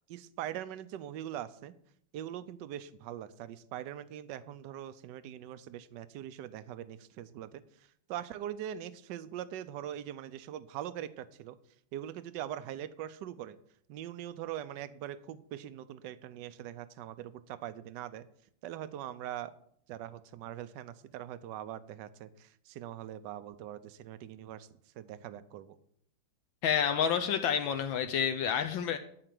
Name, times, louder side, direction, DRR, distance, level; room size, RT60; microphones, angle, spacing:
voice 1, 0.1-1.7 2.1-11.6 11.9-13.6 13.9-18.3 18.6-19.5 19.9-24.7 24.9-25.8, right 11 dB, 70° right, 14 dB, 1.1 m, -42 dB
voice 2, 26.6-29.0, left 8 dB, 75° left, 9 dB, 1.4 m, -29 dB
12.5 x 5.0 x 7.6 m, 0.69 s
omnidirectional pair, 2.3 m